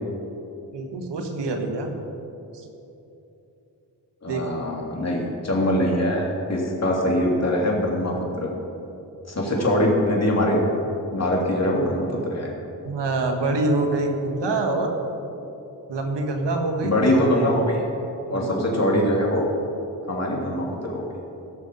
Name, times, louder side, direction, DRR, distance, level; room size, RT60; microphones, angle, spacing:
voice 1, 0.7-1.9 2.5-2.6 4.3-4.5 9.5-9.7 12.8-14.9 15.9-17.3 18.3-18.7, right 2 dB, 85° right, 4 dB, 1.4 m, -25 dB
voice 2, 4.2-8.5 9.3-10.6 11.1-12.5 16.8-17.8 18.3-19.4 20.1-21.0, left 1 dB, 40° left, -2 dB, 3.0 m, -23 dB
16.5 x 6.6 x 5.3 m, 2.9 s
cardioid pair, 50°, 41 cm